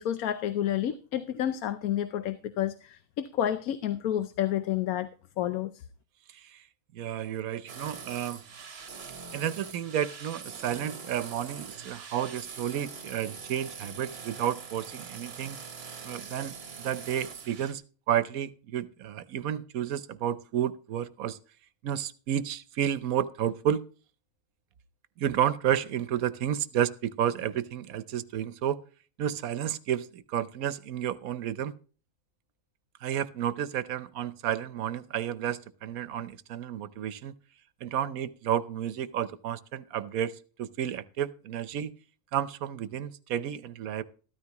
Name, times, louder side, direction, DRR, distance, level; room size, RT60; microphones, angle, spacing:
voice 1, 0.0-5.1 5.4-5.8, left 11 dB, 85° left, 12 dB, 1.2 m, -30 dB
voice 2, 6.9-8.4 9.3-15.6 16.0-21.4 21.8-23.8 25.2-28.8 29.2-31.7 33.0-37.4 37.8-40.3 40.6-41.9 42.3-44.0, right 10 dB, 80° right, 15 dB, 1.2 m, -31 dB
sound 1, 7.7-17.7, right 5 dB, 50° right, 1.2 m, -43 dB
14.0 x 13.0 x 3.0 m, 0.38 s
omnidirectional pair, 1.5 m